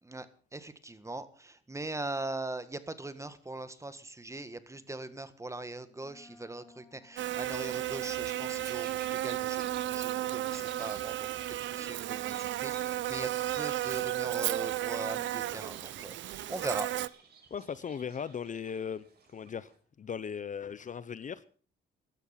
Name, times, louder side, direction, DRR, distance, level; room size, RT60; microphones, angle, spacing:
voice 1, 0.5-9.6 9.9-13.3 13.6-16.9, right 2 dB, 15° right, 1.7 m, -40 dB
Wind instrument woodwind instrument, 6.0-12.0, left 4 dB, 15° left, 1.4 m, -58 dB
Buzz, 7.2-17.1, right 13 dB, 70° right, 0.7 m, -34 dB
sound 1, 8.1-19.8, right 5 dB, 55° right, 4.9 m, -56 dB
voice 2, 17.5-19.0 19.3-19.7 20.0-21.5, left 7 dB, 40° left, 0.7 m, -37 dB
16.0 x 12.0 x 5.8 m
cardioid pair, 90°, 20 cm